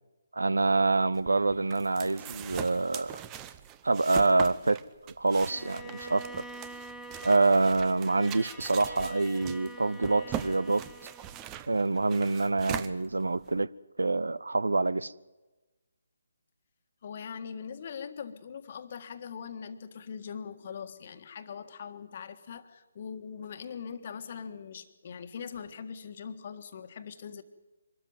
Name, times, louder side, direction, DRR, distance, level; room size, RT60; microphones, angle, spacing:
voice 1, 0.3-3.2 3.8-4.8 5.2-6.5 7.2-10.8 11.7-13.7 14.0-15.1, right 3 dB, 75° right, 0.7 m, -26 dB
sound 1, 1.1-13.6, right 10 dB, 20° right, 0.8 m, -42 dB
Bowed string instrument, 5.4-11.7, right 1 dB, ahead, 1.1 m, -46 dB
voice 2, 17.0-27.4, left 7 dB, 40° left, 1.6 m, -41 dB
24.5 x 13.5 x 9.3 m
figure-of-eight pair, 145°, 0 cm